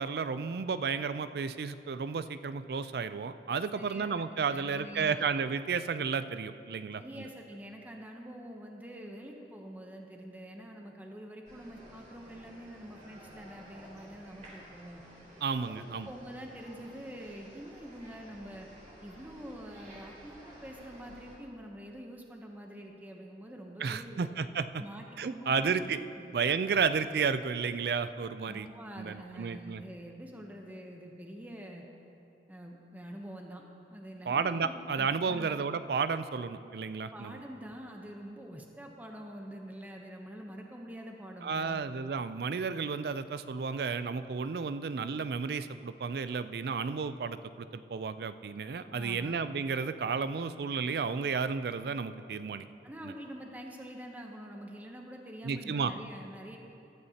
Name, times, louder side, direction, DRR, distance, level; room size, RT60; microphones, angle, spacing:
voice 1, 0.0-7.3 15.4-16.1 23.8-24.8 25.2-26.0 26.3-28.7 29.0-29.8 34.3-37.4 41.4-52.7 53.0-53.1 55.4-55.9, right 5 dB, 65° right, 13 dB, 0.4 m, -32 dB
voice 2, 3.7-4.1 4.5-5.2 7.0-15.0 15.7-18.7 19.0-24.3 24.8-26.3 28.5-31.8 32.5-33.6 33.9-35.5 37.1-41.8 48.9-49.3 52.8-56.6, equal, 10° right, 1 dB, 0.8 m, -46 dB
sound 1, 11.4-21.4, right 1 dB, 40° right, 2.4 m, -53 dB
15.0 x 12.5 x 2.9 m, 2.8 s
head